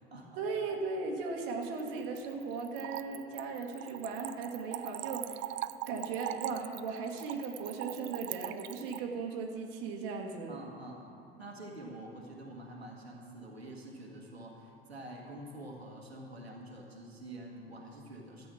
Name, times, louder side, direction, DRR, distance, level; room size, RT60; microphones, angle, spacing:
voice 1, 0.4-5.5 5.9-10.6, right 4 dB, 60° right, 1 dB, 1.5 m, -37 dB
Splash splatter / Trickle dribble, 1.6-9.0, right 15 dB, 40° right, 0.4 m, -41 dB
voice 2, 10.5-11.1 11.4-18.5, right 1 dB, 90° right, -1 dB, 1.5 m, -47 dB
13.0 x 7.8 x 6.1 m, 2.6 s
figure-of-eight pair, 70°, 30 cm